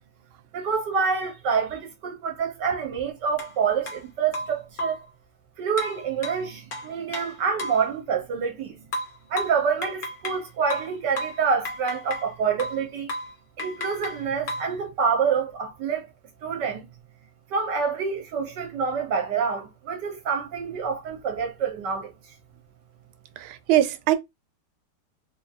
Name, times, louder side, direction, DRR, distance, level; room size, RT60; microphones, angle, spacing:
voice 1, 0.5-5.0 5.6-8.9 9.3-13.1 13.6-16.0 16.4-16.8 17.5-22.1, right 6 dB, 65° right, 1.3 m, -27 dB
sound 1, 3.4-3.5 3.9-4.0 4.3-5.1 5.8-7.9 8.9-10.4 10.7-12.3 12.6-12.8 13.1-13.3 13.6-14.7, left 1 dB, 70° left, 0.5 m, -34 dB
voice 2, 23.4-24.2, right 13 dB, 85° right, 1.4 m, -22 dB
3.7 x 2.4 x 2.7 m
omnidirectional pair, 2.2 m